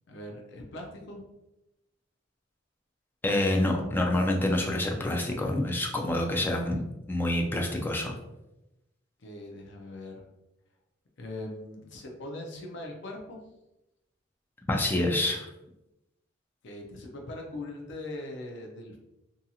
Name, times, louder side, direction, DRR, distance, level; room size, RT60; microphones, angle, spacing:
voice 1, 0.1-1.2 9.2-10.2 11.2-13.4 16.6-19.0, left 2 dB, 65° left, 1 dB, 0.5 m, -41 dB
voice 2, 3.2-8.1 14.7-15.5, left 1 dB, 10° left, 0 dB, 0.4 m, -27 dB
2.7 x 2.7 x 2.3 m, 0.93 s
head